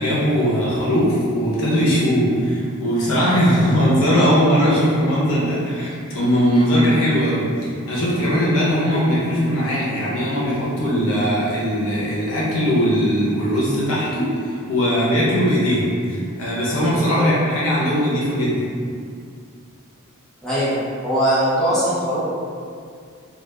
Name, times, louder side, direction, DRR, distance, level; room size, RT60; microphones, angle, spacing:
voice 1, 0.0-18.7, equal, 75° left, -7 dB, 0.8 m, -19 dB
voice 2, 17.1-17.4 20.4-20.7 21.0-22.2, equal, ahead, -12 dB, 0.8 m, -21 dB
2.4 x 2.4 x 3.3 m, 2.2 s
head